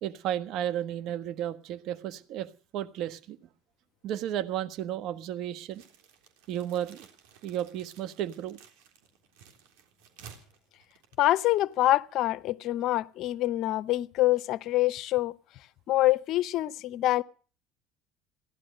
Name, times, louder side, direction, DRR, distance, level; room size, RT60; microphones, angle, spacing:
voice 1, 0.0-3.4 4.0-5.8 6.5-7.1 7.4-8.6, right 11 dB, 65° right, 1.3 m, -33 dB
sound 1, 5.7-11.8, right 7 dB, 80° right, 3.6 m, -55 dB
voice 2, 11.2-15.3 15.9-17.2, left 15 dB, 60° left, 0.7 m, -25 dB
17.0 x 11.5 x 6.6 m
supercardioid pair, 85°, 0 cm